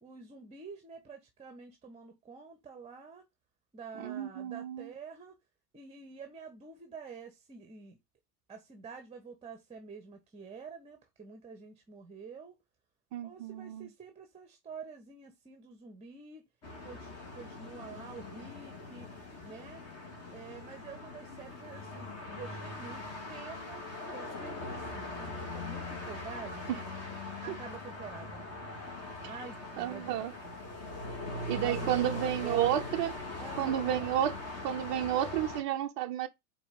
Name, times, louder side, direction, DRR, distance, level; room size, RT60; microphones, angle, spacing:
voice 1, 0.0-3.2 3.7-5.4 5.7-8.0 8.5-12.6 13.2-16.4 16.8-19.1 19.4-19.8 20.3-26.7 27.4-28.4 29.2-30.1 30.4-30.5 31.0-31.2 31.6-32.9 33.4-34.1, right 5 dB, 15° right, 1.0 m, -48 dB
voice 2, 4.0-4.9 13.1-13.9 26.7-26.8 27.5-27.6 29.2-29.3 29.8-30.3 31.5-33.1 33.6-34.4 34.6-36.3, right 12 dB, 35° right, 0.5 m, -31 dB
sound 1, 16.6-35.6, left 2 dB, 30° left, 2.3 m, -41 dB
5.0 x 3.9 x 5.2 m
figure-of-eight pair, 90°, 49 cm